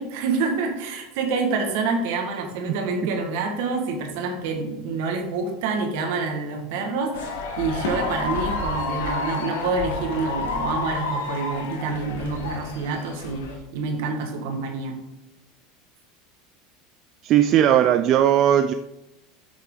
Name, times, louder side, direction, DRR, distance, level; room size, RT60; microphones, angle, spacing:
voice 1, 0.0-14.9, right 4 dB, 75° right, 3 dB, 1.7 m, -27 dB
sound 1, 7.1-13.6, left 3 dB, 90° left, 1.4 m, -30 dB
voice 2, 17.2-18.7, right 10 dB, 50° right, 10 dB, 0.4 m, -17 dB
8.1 x 6.4 x 3.9 m, 0.94 s
supercardioid pair, 110°, 0 cm